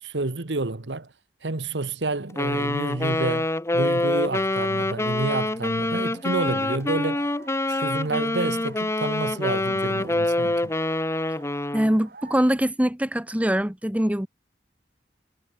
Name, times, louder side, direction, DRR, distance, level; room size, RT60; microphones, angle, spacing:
voice 1, 0.0-1.1 1.4-7.3 7.7-10.7, right 2 dB, 85° right, 1.4 m, -29 dB
Wind instrument woodwind instrument, 2.4-11.9, left 1 dB, 15° left, 0.9 m, -26 dB
sound 1, 4.3-12.5, right 4 dB, 55° right, 4.8 m, -50 dB
voice 2, 11.7-14.3, equal, 10° right, 1.0 m, -23 dB
head